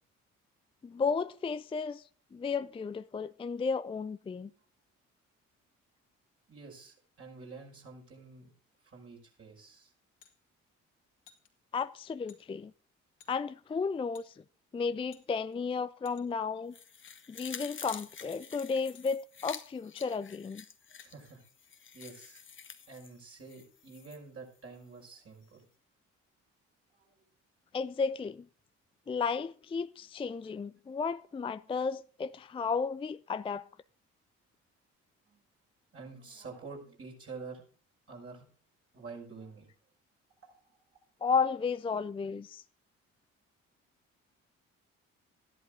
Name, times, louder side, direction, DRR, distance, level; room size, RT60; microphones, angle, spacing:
voice 1, 0.8-2.0 2.3-4.5 11.7-12.7 13.3-14.3 14.7-16.7 17.3-20.6 27.7-28.4 29.1-33.7 41.2-42.6, left 5 dB, 15° left, 0.5 m, -33 dB
voice 2, 6.5-8.5 8.8-9.9 21.0-21.4 21.9-22.4 22.9-25.7 26.9-27.2 30.3-30.5 35.2-35.4 35.9-37.6 38.1-38.5 38.9-39.7 40.4-41.0, right 4 dB, 35° right, 5.5 m, -48 dB
sound 1, 10.2-10.3 11.3-11.5 12.3-12.4 13.2-13.3 14.1-14.3 15.1-15.6 16.1-16.4 17.1-17.2 18.0-18.2 18.9-19.1 20.0-20.1 21.0-21.1 22.0-22.2, left 9 dB, 65° left, 2.1 m, -57 dB
sound 2, 16.7-24.2 24.6-24.7, left 6 dB, 30° left, 1.3 m, -48 dB
14.0 x 10.5 x 3.7 m
figure-of-eight pair, 45°, 38 cm